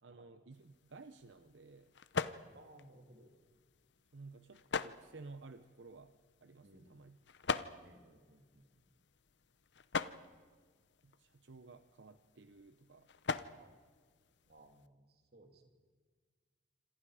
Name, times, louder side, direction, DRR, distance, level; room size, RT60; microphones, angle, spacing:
voice 1, 0.0-1.9 4.1-6.1 6.4-7.2 11.0-13.1, right 3 dB, 80° right, 10 dB, 0.8 m, -55 dB
sound 1, 0.5-14.9, left 5 dB, 70° left, 0.8 m, -44 dB
voice 2, 2.5-3.3 6.6-7.0 7.8-8.9 13.5-13.8 14.5-15.7, right 1 dB, 55° right, 4 dB, 2.8 m, -61 dB
27.0 x 27.0 x 5.0 m, 1.6 s
head